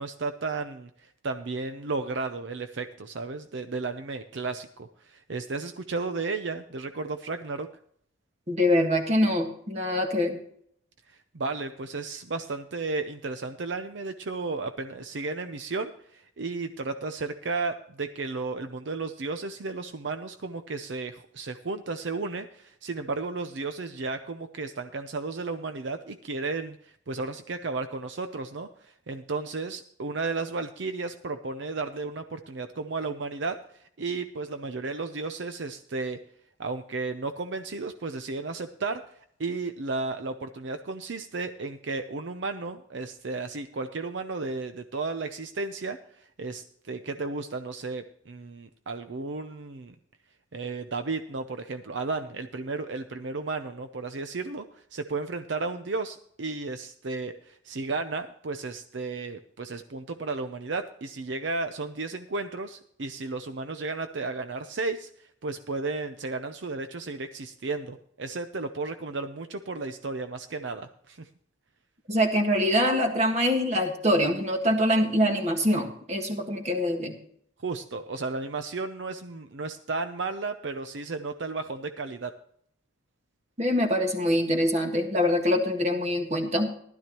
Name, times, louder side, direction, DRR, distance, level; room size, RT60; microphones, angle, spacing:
voice 1, 0.0-7.7 11.1-33.6 34.0-36.2 36.6-39.0 39.4-49.9 50.5-71.3 77.6-82.3, right 3 dB, 65° right, 8 dB, 0.6 m, -33 dB
voice 2, 8.5-10.4 72.1-77.1 83.6-86.7, equal, 35° right, 4 dB, 1.7 m, -24 dB
15.5 x 12.0 x 3.0 m, 0.65 s
head